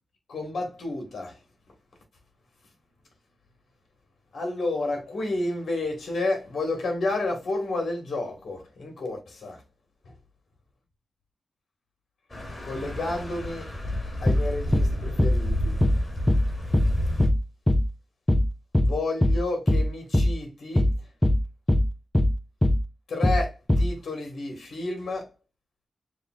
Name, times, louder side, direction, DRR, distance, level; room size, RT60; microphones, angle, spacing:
voice 1, 0.3-1.3 4.3-9.6 12.6-13.7 14.2-15.8 18.8-20.9 23.1-25.3, left 2 dB, 75° left, 1.4 m, -31 dB
sound 1, 12.3-17.3, left 1 dB, 30° left, 2.8 m, -31 dB
sound 2, 14.3-14.5 14.7-14.9 15.2-15.4 15.8-16.0 16.3-16.5 16.7-16.9 17.2-17.4 17.7-17.9 18.3-18.5 18.7-18.9 19.2-19.4 19.7-19.9 20.1-20.3 20.8-21.0 21.2-21.4 21.7-21.9 22.1-22.3 22.6-22.8 23.2-23.4 23.7-23.9, left 1 dB, 15° left, 0.5 m, -20 dB
6.7 x 2.5 x 2.3 m
cardioid pair, 70°, 0 cm